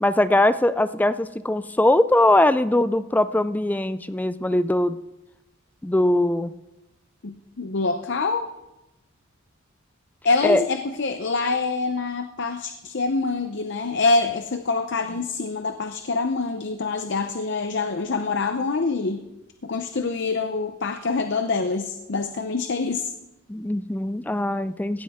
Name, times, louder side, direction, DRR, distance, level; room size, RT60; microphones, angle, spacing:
voice 1, 0.0-5.0 5.8-6.5 10.4-10.6 23.5-25.0, left 1 dB, 10° left, 13 dB, 0.3 m, -21 dB
voice 2, 7.2-8.5 10.2-19.2 19.6-23.1, left 3 dB, 55° left, 8 dB, 0.7 m, -25 dB
17.0 x 12.0 x 3.6 m, 0.96 s
head